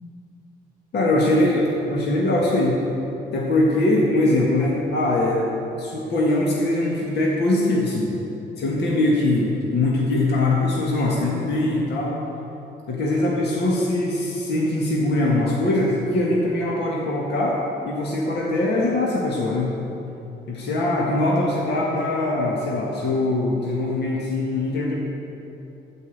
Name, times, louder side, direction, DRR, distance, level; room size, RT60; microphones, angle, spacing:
voice 1, 0.9-2.8 3.3-5.5 5.8-8.1 8.6-12.2 12.9-17.6 17.8-19.7 20.5-24.9, left 2 dB, 65° left, -3 dB, 1.9 m, -22 dB
14.5 x 5.5 x 8.0 m, 2.8 s
cardioid pair, 140°, 19 cm